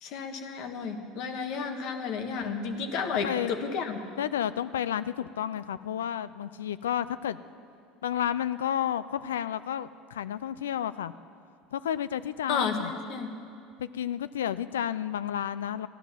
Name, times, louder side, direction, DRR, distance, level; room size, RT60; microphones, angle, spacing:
voice 1, 0.0-4.0 12.5-13.3, left 5 dB, 65° left, 6 dB, 1.5 m, -32 dB
voice 2, 4.2-7.4 8.0-11.1 11.7-12.9 13.8-15.9, left 10 dB, 90° left, 15 dB, 0.4 m, -31 dB
14.5 x 11.0 x 7.3 m, 2.4 s
hypercardioid pair, 85°, 0 cm